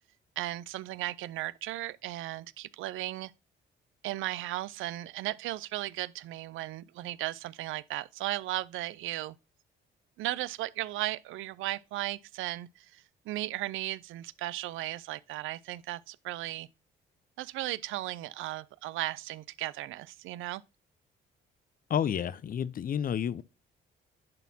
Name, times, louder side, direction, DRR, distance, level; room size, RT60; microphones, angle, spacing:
voice 1, 0.4-3.3 4.0-9.3 10.2-16.7 17.4-20.6, right 16 dB, 85° right, 0.4 m, -36 dB
voice 2, 21.9-23.4, left 8 dB, 45° left, 0.5 m, -30 dB
10.5 x 4.2 x 2.7 m
cardioid pair, 90°, 20 cm